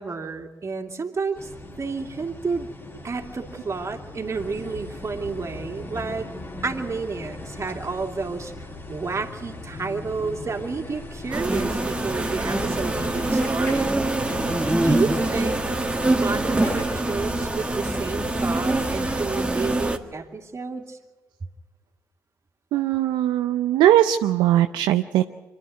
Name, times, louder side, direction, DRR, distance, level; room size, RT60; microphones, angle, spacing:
voice 1, 0.0-1.5 1.8-2.7 3.0-6.3 6.6-8.5 8.9-14.0 14.8-15.6 16.1-21.0, right 4 dB, 40° right, 4 dB, 2.6 m, -30 dB
sound 1, 1.3-19.2, left 2 dB, 30° left, 3.1 m, -38 dB
sound 2, 11.3-20.0, right 2 dB, 15° right, 1.8 m, -24 dB
voice 2, 22.7-25.2, right 12 dB, 75° right, 7 dB, 0.6 m, -20 dB
25.5 x 11.5 x 9.3 m, 1.3 s
hypercardioid pair, 45°, 8 cm